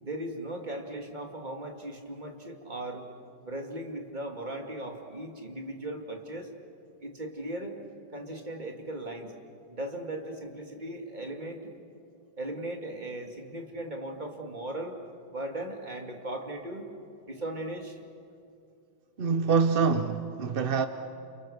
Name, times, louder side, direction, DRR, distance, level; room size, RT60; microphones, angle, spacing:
voice 1, 0.0-3.0 3.4-6.5 7.0-7.8 8.1-9.3 9.7-11.6 12.4-15.0 15.3-16.9 17.2-18.0, right 1 dB, 25° right, 2.6 m, -37 dB
voice 2, 19.2-20.9, right 5 dB, 50° right, 0.6 m, -25 dB
30.0 x 29.5 x 6.6 m
omnidirectional pair, 2.0 m